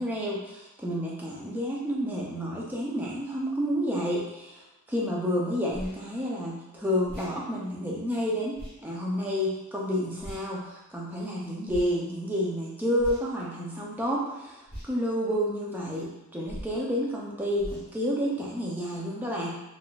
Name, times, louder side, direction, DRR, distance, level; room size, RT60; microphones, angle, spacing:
voice 1, 0.0-19.5, equal, 10° right, -4 dB, 0.5 m, -30 dB
sound 1, 5.7-6.0 7.0-7.3 8.5-8.8 10.2-10.5 11.7-11.9 13.0-13.4 14.7-14.9 16.5-16.8 17.6-17.9, equal, 10° left, 1.2 m, -40 dB
3.7 x 2.5 x 2.3 m, 1.0 s
head